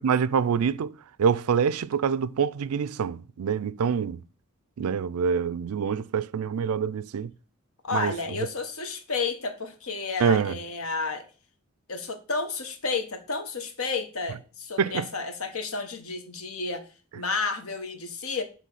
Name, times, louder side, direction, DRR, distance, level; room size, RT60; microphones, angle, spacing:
voice 1, 0.0-4.2 4.8-7.3 7.9-8.1 10.2-10.6 14.8-15.0, right 6 dB, 80° right, 0.4 m, -25 dB
voice 2, 7.8-11.2 11.9-16.9 17.1-18.4, left 4 dB, 70° left, 1.2 m, -31 dB
7.4 x 3.5 x 5.5 m
head